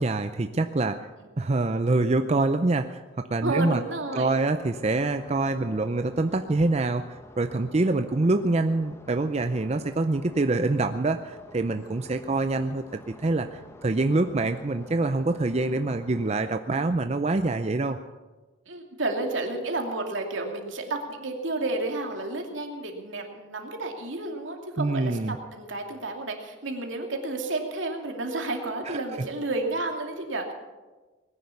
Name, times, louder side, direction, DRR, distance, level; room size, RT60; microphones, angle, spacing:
voice 1, 0.0-1.1 1.4-3.8 4.1-18.0 24.8-25.4 28.9-29.0, right 2 dB, 35° right, 8 dB, 0.5 m, -25 dB
voice 2, 3.4-4.4 16.7-16.8 18.7-30.5, right 2 dB, 75° right, 2 dB, 2.6 m, -31 dB
sound 1, 4.6-16.3, left 1 dB, 15° left, 1.0 m, -49 dB
19.5 x 10.5 x 7.0 m, 1.2 s
head